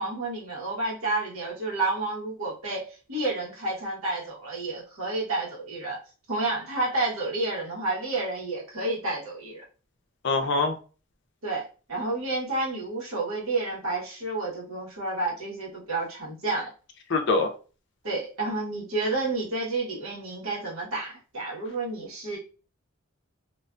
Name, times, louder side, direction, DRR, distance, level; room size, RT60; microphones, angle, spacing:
voice 1, 0.0-6.0 6.3-9.6 11.4-11.6 11.9-16.7 18.0-22.4, right 2 dB, 85° right, 1.1 m, -30 dB
voice 2, 10.2-10.7 17.1-17.5, left 3 dB, 55° left, 0.5 m, -23 dB
2.4 x 2.2 x 2.5 m
head